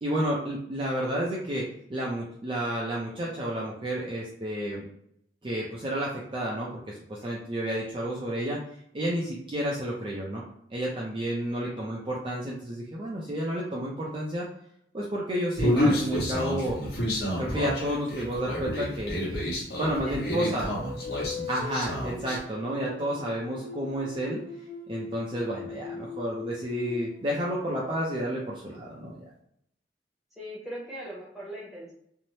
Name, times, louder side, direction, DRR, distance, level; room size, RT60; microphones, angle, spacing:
voice 1, 0.0-4.8 5.4-8.6 8.9-10.4 10.7-14.5 14.9-16.8 17.4-19.1 19.5-20.7 21.5-24.4 24.9-29.2, right 1 dB, 30° right, -4 dB, 0.4 m, -31 dB
Human voice, 15.6-22.4, left 1 dB, 65° left, 1.0 m, -29 dB
voice 2, 20.0-20.6 30.4-31.9, right 1 dB, ahead, -7 dB, 0.9 m, -40 dB
sound 1, 20.7-28.0, left 4 dB, 90° left, 0.9 m, -40 dB
2.7 x 2.1 x 3.1 m, 0.72 s
head